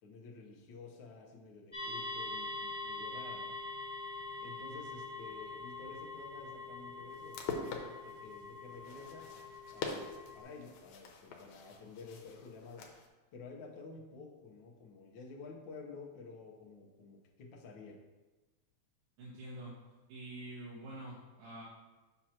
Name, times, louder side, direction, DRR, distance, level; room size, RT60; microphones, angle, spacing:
voice 1, 0.0-3.6 4.4-7.4 8.0-9.3 9.7-12.9 13.3-18.0, left 4 dB, 65° left, -2 dB, 1.2 m, -51 dB
sound 1, 1.7-10.4, left 2 dB, 5° right, 1.4 m, -44 dB
sound 2, 7.1-13.1, left 4 dB, 80° left, 2.1 m, -45 dB
voice 2, 19.2-19.8 20.1-21.6, right 1 dB, 90° right, -6 dB, 2.5 m, -46 dB
7.8 x 3.0 x 5.7 m, 1.2 s
omnidirectional pair, 3.3 m